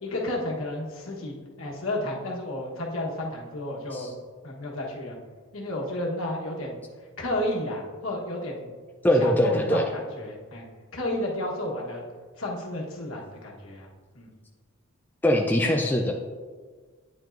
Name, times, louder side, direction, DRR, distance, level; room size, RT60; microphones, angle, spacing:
voice 1, 0.0-4.1 4.4-5.2 5.5-6.8 7.2-8.7 9.2-10.6 10.9-12.0 12.4-13.9 14.1-14.3, left 1 dB, 75° left, -2 dB, 1.2 m, -32 dB
voice 2, 9.0-9.9 15.2-16.1, equal, 10° left, 1 dB, 0.3 m, -22 dB
9.0 x 5.3 x 2.5 m, 1.5 s
head